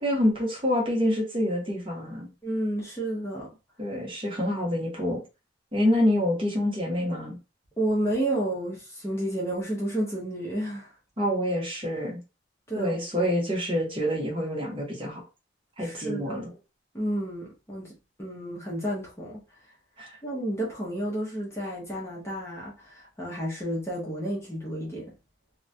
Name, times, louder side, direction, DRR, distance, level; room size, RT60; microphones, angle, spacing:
voice 1, 0.0-2.3 3.8-5.2 5.7-7.4 11.2-12.2 12.8-15.2 15.8-16.5 20.0-20.1, left 1 dB, 25° right, 0.8 m, -27 dB
voice 2, 2.4-3.5 7.8-10.9 12.7-13.0 15.8-16.6 16.9-19.4 20.2-25.1, right 1 dB, 15° left, 0.6 m, -31 dB
2.3 x 2.1 x 2.5 m
head